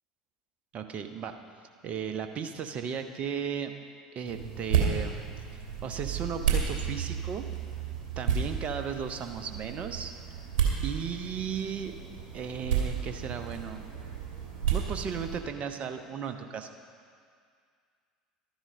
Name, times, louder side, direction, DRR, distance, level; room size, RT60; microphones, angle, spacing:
voice 1, 0.7-1.4 1.8-3.7 4.1-5.1 5.8-7.4 8.2-10.1 10.8-11.9 12.3-13.8 14.7-16.7, right 7 dB, 40° right, 7 dB, 0.9 m, -35 dB
sound 1, 4.3-15.4, right 7 dB, 55° right, 2.4 m, -32 dB
12.5 x 10.5 x 5.2 m, 2.1 s
figure-of-eight pair, 70°, 4 cm